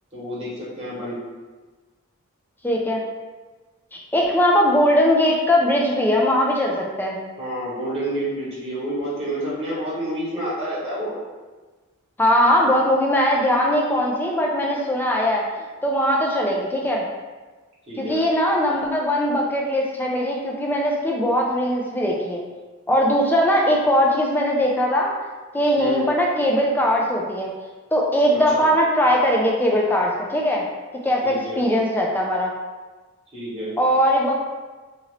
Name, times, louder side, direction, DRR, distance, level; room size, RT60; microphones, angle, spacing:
voice 1, 0.1-1.2 7.4-11.2 17.9-18.2 25.8-26.0 28.3-28.7 31.2-31.6 33.3-33.8, right 1 dB, 25° right, -8 dB, 1.1 m, -29 dB
voice 2, 2.6-3.0 3.9-7.2 12.2-15.4 15.8-17.0 18.0-22.4 22.9-25.1 25.5-27.5 27.9-30.6 31.0-32.5 33.8-34.4, equal, 10° left, -2 dB, 0.3 m, -20 dB
2.8 x 2.5 x 3.2 m, 1.3 s
head